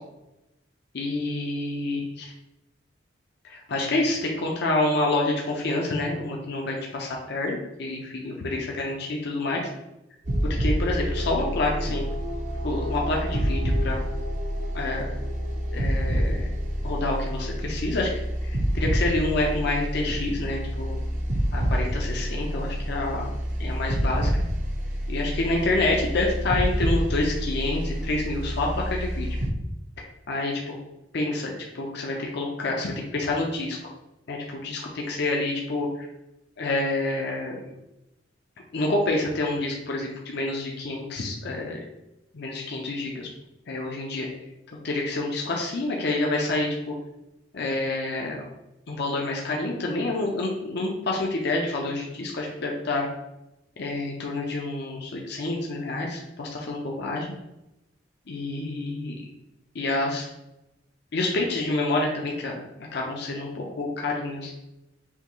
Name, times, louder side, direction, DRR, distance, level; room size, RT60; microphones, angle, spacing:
voice 1, 0.9-2.3 3.4-9.6 10.6-12.0 12.6-14.0 14.7-15.1 15.7-16.5 16.8-21.0 21.5-23.3 23.6-24.3 25.1-29.3 30.3-30.7 31.1-33.8 34.3-36.1 36.6-37.7 38.7-41.8 42.3-43.3 43.7-44.3 44.8-46.9 47.5-48.4 48.9-53.1 53.8-57.3 58.3-59.3 59.7-60.3 61.1-64.5, left 2 dB, 60° left, -1 dB, 0.6 m, -28 dB
sound 1, 10.2-29.5, equal, 45° right, 0.7 m, -28 dB
5.6 x 2.4 x 3.0 m, 0.93 s
head